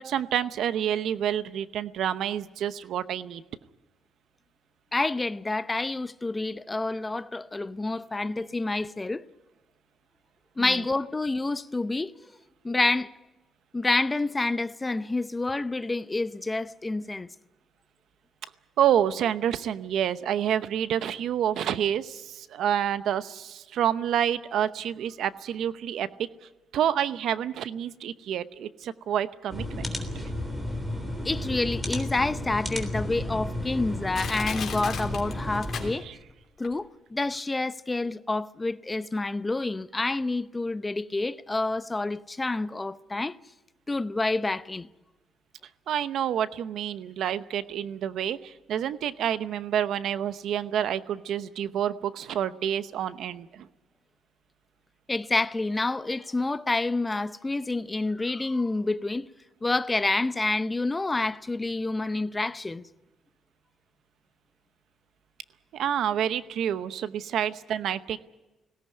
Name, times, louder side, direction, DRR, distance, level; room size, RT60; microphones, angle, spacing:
voice 1, 0.0-3.4 10.6-10.8 18.8-26.3 26.7-30.0 36.0-36.2 45.9-53.7 65.7-68.2, right 10 dB, 75° right, 0.8 m, -28 dB
voice 2, 4.9-9.2 10.6-12.1 12.6-13.1 13.7-17.3 31.2-36.1 36.6-43.4 43.9-44.9 55.1-59.3 59.6-62.8, left 2 dB, 20° left, 0.7 m, -28 dB
sound 1, 29.5-35.9, left 1 dB, 15° right, 3.5 m, -33 dB
Crushing, 34.1-36.3 36.6-36.7, left 7 dB, 55° left, 3.3 m, -36 dB
19.5 x 17.5 x 9.7 m
cardioid pair, 90°, 0 cm